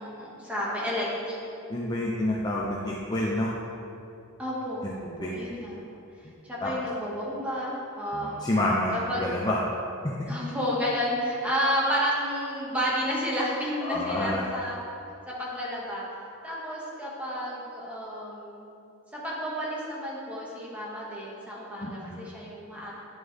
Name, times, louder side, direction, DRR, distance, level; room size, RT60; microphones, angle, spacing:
voice 1, 0.0-1.4 2.0-2.3 4.4-5.8 6.2-8.4 8.9-9.2 10.3-14.8 15.3-16.1 16.4-18.7 19.1-22.9, equal, 5° right, -6 dB, 1.9 m, -31 dB
voice 2, 1.7-3.5 4.8-5.3 6.2-6.3 6.6-6.7 8.1-9.6 10.0-10.1 13.8-14.5 21.8-22.2, left 1 dB, 20° left, -5 dB, 0.7 m, -28 dB
10.5 x 7.6 x 3.5 m, 2.7 s
head